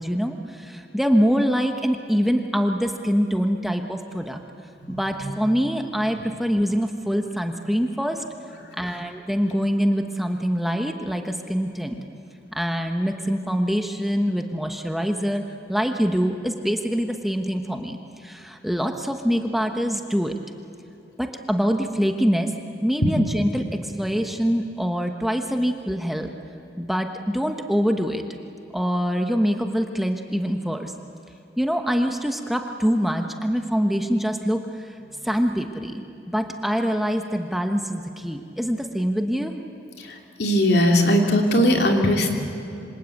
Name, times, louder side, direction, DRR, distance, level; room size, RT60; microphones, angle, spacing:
voice 1, 0.0-4.4 4.9-8.2 8.7-11.9 12.5-20.3 21.2-22.5 22.8-26.3 26.8-28.2 28.7-30.9 31.6-35.0 35.2-36.0 36.3-39.5, equal, ahead, 4 dB, 1.1 m, -24 dB
voice 2, 40.4-42.3, equal, 65° left, 2 dB, 2.8 m, -19 dB
27.0 x 25.5 x 8.5 m, 2.8 s
head